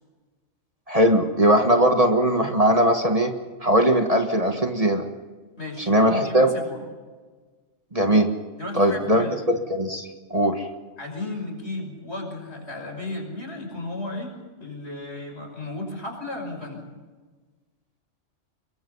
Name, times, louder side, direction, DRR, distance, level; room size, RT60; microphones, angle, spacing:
voice 1, 0.9-3.3 3.6-5.0 5.9-6.5 7.9-8.3 8.8-10.7, right 1 dB, 30° right, 4 dB, 1.6 m, -20 dB
voice 2, 5.6-6.8 8.6-9.4 11.0-14.3 14.6-16.8, left 2 dB, 60° left, 2 dB, 6.0 m, -34 dB
24.5 x 22.5 x 5.5 m, 1.4 s
omnidirectional pair, 1.2 m